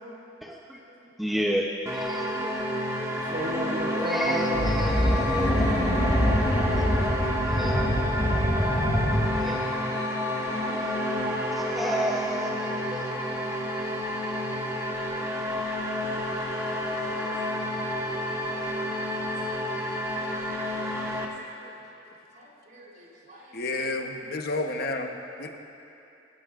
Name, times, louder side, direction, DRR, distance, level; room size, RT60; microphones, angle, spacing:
voice 1, 0.4-0.8 1.2-2.5 3.9-6.3 7.5-7.8 9.3-9.7 10.7-11.0 11.5-13.0, equal, ahead, -2 dB, 0.7 m, -32 dB
sound 1, 1.9-21.3, left 1 dB, 15° right, 1.4 m, -30 dB
voice 2, 3.3-5.3 12.9-13.2 14.5-15.2 15.5-15.7 16.2-16.6 17.1-17.3 17.6-17.7 18.4-18.6 18.9-19.1 19.7-20.3 21.6-21.8 22.3-23.5, equal, 50° right, -4 dB, 3.7 m, -38 dB
Colossal growl, 4.5-9.8, equal, 20° left, 3.3 m, -25 dB
voice 3, 20.8-21.2 23.5-25.5, left 2 dB, 55° left, 4 dB, 1.0 m, -31 dB
27.0 x 14.5 x 2.5 m, 2.8 s
head